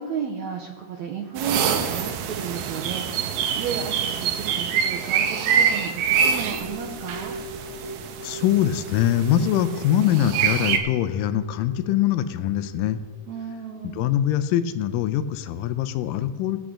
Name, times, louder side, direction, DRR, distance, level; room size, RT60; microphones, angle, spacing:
voice 1, 0.0-7.4 13.3-14.1, right 7 dB, 70° right, 2 dB, 1.9 m, -33 dB
sound 1, 1.4-10.8, right 7 dB, 90° right, 2.6 m, -26 dB
sound 2, 5.9-13.3, right 1 dB, 10° left, 1.7 m, -41 dB
voice 2, 8.2-13.0 14.0-16.6, left 11 dB, 80° left, 10 dB, 2.2 m, -23 dB
18.5 x 8.5 x 3.8 m, 1.4 s
omnidirectional pair, 3.9 m